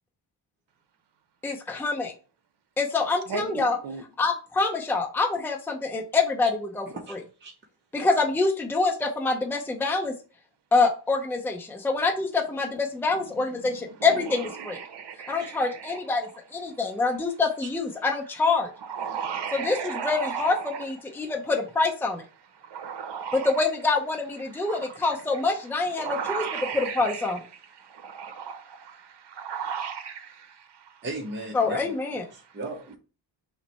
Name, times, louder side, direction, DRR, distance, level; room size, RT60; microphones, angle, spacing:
voice 1, 1.4-2.1 2.8-3.8 4.2-7.2 7.9-10.1 10.7-14.8 15.3-18.7 19.5-22.2 23.4-26.4 26.7-27.4 31.5-32.2, left 3 dB, 5° left, 0.6 m, -26 dB
voice 2, 3.3-4.0 13.1-16.3 16.7-16.8 18.8-21.3 22.5-23.6 24.4-31.0 32.3-32.6, right 7 dB, 60° right, 0.9 m, -36 dB
voice 3, 6.9-7.5 17.6-17.7 31.0-31.8 32.3-33.0, right 2 dB, 25° right, 0.9 m, -36 dB
5.8 x 2.2 x 4.1 m
cardioid pair, 110°, 47 cm